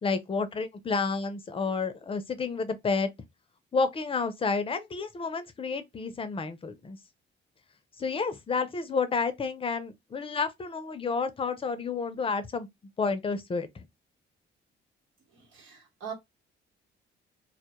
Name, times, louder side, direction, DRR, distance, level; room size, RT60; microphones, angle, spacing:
voice 1, 0.0-3.1 3.7-7.0 8.0-12.7 13.0-13.7, left 4 dB, 30° left, 0.5 m, -30 dB
voice 2, 15.3-16.1, right 7 dB, 85° right, 1.1 m, -42 dB
2.2 x 2.1 x 2.9 m
cardioid pair, 90°, 20 cm